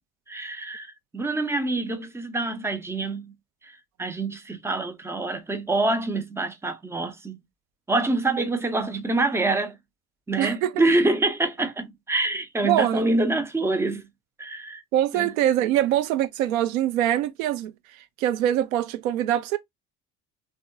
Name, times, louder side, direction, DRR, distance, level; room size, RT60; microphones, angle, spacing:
voice 1, 0.3-3.3 3.6-7.4 7.9-9.8 10.3-14.1 14.4-14.8 15.1-15.3, right 2 dB, 5° right, 0.3 m, -26 dB
voice 2, 10.4-11.0 12.6-13.0 14.9-19.6, right 12 dB, 65° right, 0.6 m, -24 dB
3.3 x 2.2 x 2.4 m
figure-of-eight pair, 60°, 45 cm